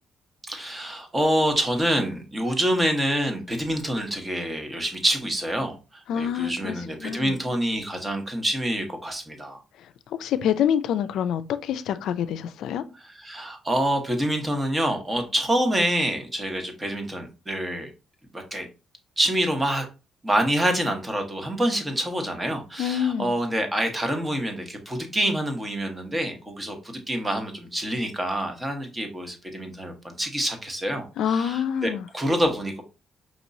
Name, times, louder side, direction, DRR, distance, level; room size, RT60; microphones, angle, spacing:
voice 1, 0.5-9.6 12.9-17.9 18.3-18.7 19.2-19.9 20.2-32.8, right 1 dB, 15° right, 1.1 m, -26 dB
voice 2, 6.1-6.8 7.0-7.4 10.2-12.8 22.8-23.3 31.2-32.1, left 8 dB, 80° left, 0.4 m, -26 dB
5.1 x 3.0 x 2.6 m
cardioid pair, 90°, 0 cm